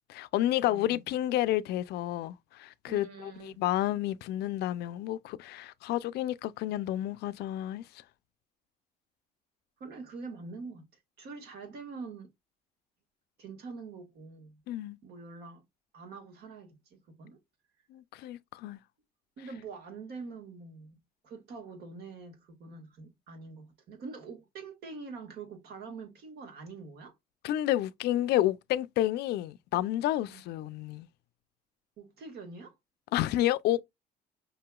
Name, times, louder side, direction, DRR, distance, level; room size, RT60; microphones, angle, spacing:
voice 1, 0.1-7.8 14.7-15.0 17.9-18.8 27.4-31.1 33.1-33.8, left 14 dB, 75° left, 0.4 m, -30 dB
voice 2, 0.6-1.0 2.9-3.6 9.8-10.9 11.2-12.3 13.4-14.6 15.0-15.6 15.9-17.4 19.4-21.0 21.2-27.1 30.3-30.4 32.0-32.8, right 4 dB, 70° right, 1.6 m, -45 dB
5.4 x 2.8 x 2.2 m
cardioid pair, 110°, 17 cm